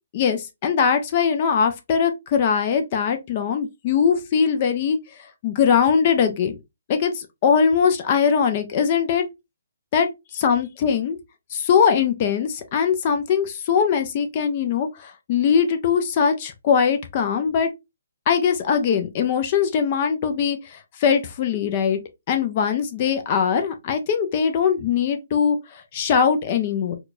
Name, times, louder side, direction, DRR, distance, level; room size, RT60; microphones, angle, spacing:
voice 1, 0.1-5.0 5.4-6.6 6.9-9.3 9.9-10.1 10.3-11.2 11.5-17.7 18.3-22.0 22.3-27.0, left 7 dB, 40° left, 0.7 m, -21 dB
4.4 x 2.4 x 2.5 m
hypercardioid pair, 145°, 0 cm